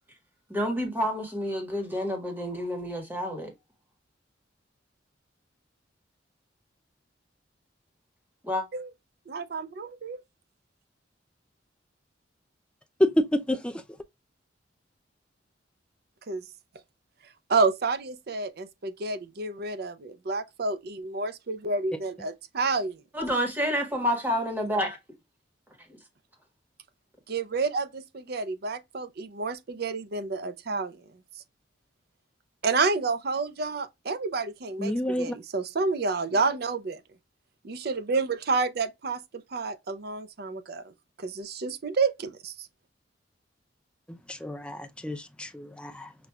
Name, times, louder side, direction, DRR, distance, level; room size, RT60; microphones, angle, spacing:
voice 1, 0.5-3.5 8.4-8.6 23.1-25.0 25.9-26.0, equal, 10° right, 1.3 m, -29 dB
voice 2, 9.3-10.2 16.3-16.4 17.5-23.0 27.3-31.0 32.6-37.0 37.6-39.2 39.5-40.8 41.2-42.5, right 4 dB, 55° right, 0.5 m, -29 dB
voice 3, 13.0-13.7 34.8-35.4 44.1-46.1, equal, 5° left, 0.3 m, -28 dB
5.8 x 2.5 x 2.2 m
head